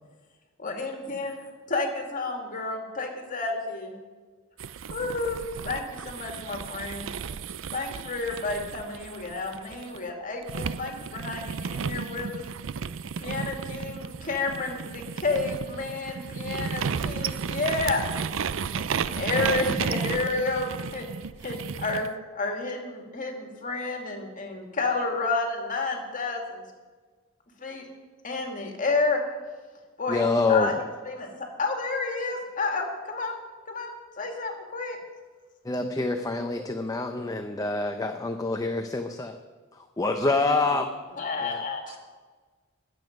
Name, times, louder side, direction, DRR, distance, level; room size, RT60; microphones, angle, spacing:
voice 1, 0.6-1.3 1.7-3.9 4.9-5.4 5.6-7.1 7.7-12.4 13.2-18.0 19.0-21.1 21.4-26.6 27.6-27.8 28.2-29.2 30.0-30.8 31.1-31.3 31.6-33.4 33.7-35.0 41.1-42.0, left 3 dB, 40° left, 3 dB, 2.3 m, -30 dB
sound 1, 4.6-10.0 10.5-22.1, right 6 dB, 70° right, 0.5 m, -33 dB
voice 2, 30.1-30.7 35.6-39.4 39.7-40.9 41.4-41.6, left 3 dB, 20° left, 5 dB, 0.7 m, -26 dB
voice 3, 36.4-36.8 40.5-40.9 41.9-42.0, right 2 dB, 30° right, 2 dB, 2.0 m, -42 dB
21.5 x 8.0 x 5.2 m, 1.4 s
head